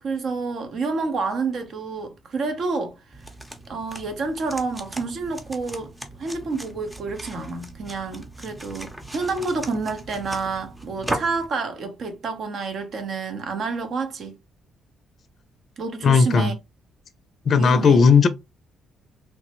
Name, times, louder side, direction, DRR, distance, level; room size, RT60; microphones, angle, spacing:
voice 1, 0.0-2.9 3.7-5.9 6.2-14.4 15.8-16.5 17.5-18.0, right 4 dB, 60° right, 0.8 m, -29 dB
sound 1, 3.1-11.5, right 1 dB, 10° right, 0.7 m, -37 dB
voice 2, 16.0-16.5 17.5-18.3, left 5 dB, 50° left, 0.4 m, -16 dB
3.2 x 2.1 x 2.9 m
cardioid pair, 90°, 0 cm